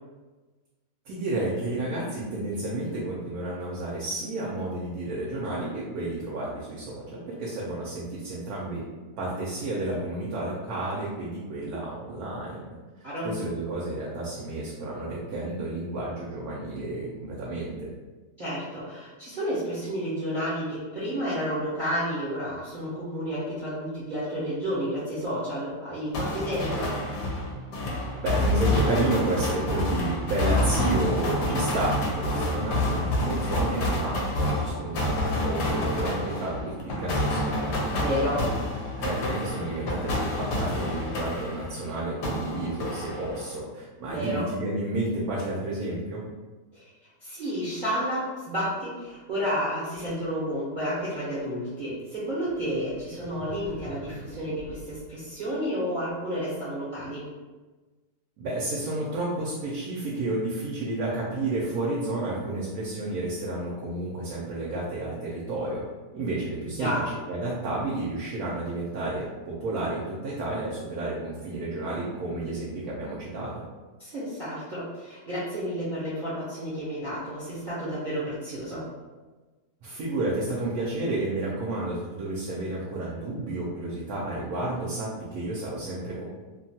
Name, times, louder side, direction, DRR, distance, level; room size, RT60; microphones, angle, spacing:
voice 1, 1.1-8.8 9.2-12.7 13.2-17.9 28.2-38.5 39.0-46.2 58.4-65.8 66.1-66.9 67.3-73.6 79.8-86.2, right 2 dB, 70° right, -5 dB, 1.0 m, -31 dB
voice 2, 13.0-13.4 18.4-26.9 38.0-38.4 44.1-44.4 46.7-46.8 47.2-57.3 66.8-67.0 74.0-78.9, equal, 40° right, -11 dB, 0.7 m, -31 dB
sound 1, 26.1-41.9 42.2-43.6, left 1 dB, 80° left, 1.2 m, -28 dB
sound 2, 52.4-55.9, left 1 dB, 55° left, 0.9 m, -45 dB
2.9 x 2.2 x 2.7 m, 1.3 s
omnidirectional pair, 1.8 m